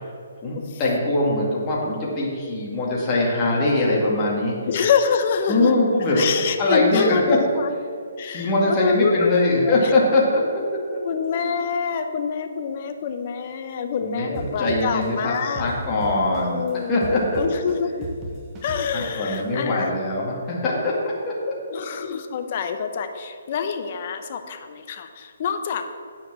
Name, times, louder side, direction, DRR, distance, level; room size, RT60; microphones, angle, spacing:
voice 1, 0.4-4.6 5.5-7.4 8.2-10.4 10.9-11.0 14.0-17.4 18.9-21.3, left 2 dB, 20° left, -5 dB, 2.1 m, -22 dB
voice 2, 4.7-5.7 6.1-7.7 8.2-9.9 11.0-15.7 16.3-17.0 17.4-18.1 18.6-19.9 21.7-25.8, left 6 dB, 40° left, 7 dB, 0.9 m, -26 dB
sound 1, 14.3-16.7 17.0-19.4, right 1 dB, 20° right, 1.3 m, -35 dB
9.5 x 5.1 x 7.5 m, 2.2 s
hypercardioid pair, 155°, 0 cm